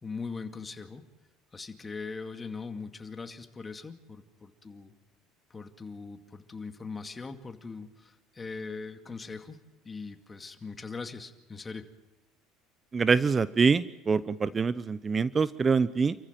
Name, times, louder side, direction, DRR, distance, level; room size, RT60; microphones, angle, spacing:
voice 1, 0.0-1.0 1.5-4.9 5.5-9.6 9.8-11.8, left 4 dB, 25° left, 7 dB, 2.3 m, -40 dB
voice 2, 12.9-16.2, right 5 dB, 30° right, 16 dB, 0.7 m, -25 dB
28.5 x 14.5 x 9.2 m, 1.1 s
hypercardioid pair, 80°, 0 cm